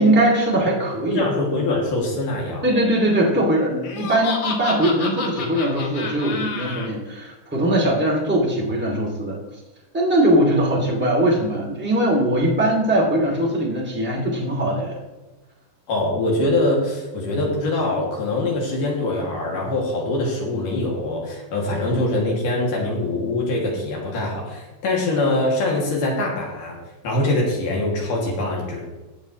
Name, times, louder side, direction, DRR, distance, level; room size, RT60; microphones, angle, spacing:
voice 1, 0.0-1.3 2.6-9.4 9.9-15.0, right 1 dB, 5° right, -3 dB, 2.0 m, -20 dB
voice 2, 1.1-2.6 15.9-26.8 27.0-28.8, left 2 dB, 80° left, -2 dB, 4.0 m, -23 dB
Laughter, 3.8-6.9, left 5 dB, 60° left, 2.2 m, -29 dB
18.5 x 7.0 x 3.2 m, 1.1 s
omnidirectional pair, 3.7 m